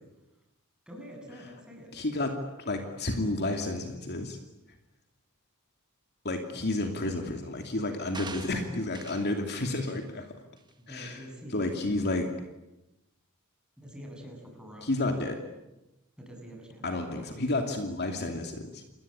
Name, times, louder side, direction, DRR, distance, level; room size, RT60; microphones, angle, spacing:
voice 1, 0.9-1.9 6.5-6.8 10.9-12.0 13.8-14.9 16.2-17.4, equal, 5° right, 0 dB, 7.8 m, -46 dB
voice 2, 1.9-4.4 6.2-10.3 10.9-11.2 11.5-12.3 14.8-15.4 16.8-18.8, left 2 dB, 50° left, 4 dB, 2.7 m, -31 dB
sound 1, 8.1-9.4 9.8-10.0 10.6-10.7, right 4 dB, 20° right, 1.6 m, -44 dB
29.0 x 21.0 x 8.8 m, 0.95 s
head